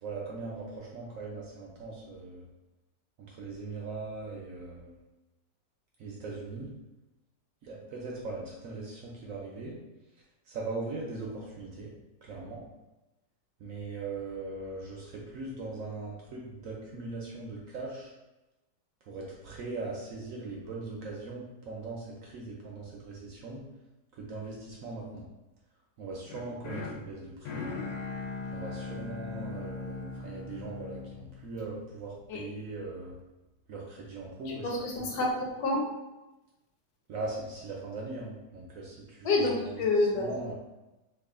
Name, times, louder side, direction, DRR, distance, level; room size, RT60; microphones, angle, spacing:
voice 1, 0.0-2.4 3.3-4.9 6.0-6.7 7.6-9.8 10.5-11.9 12.2-12.6 13.6-18.1 19.1-23.6 24.1-25.3 26.0-27.8 28.5-33.2 33.7-35.1 37.1-39.3 39.6-39.7 40.1-40.5, right 3 dB, 70° right, -3 dB, 0.8 m, -40 dB
sound 1, 26.3-32.4, left 3 dB, 85° left, 1.3 m, -40 dB
voice 2, 34.5-35.8 39.2-40.3, left 2 dB, 70° left, -1 dB, 1.2 m, -28 dB
3.0 x 2.4 x 3.6 m, 1.0 s
omnidirectional pair, 1.9 m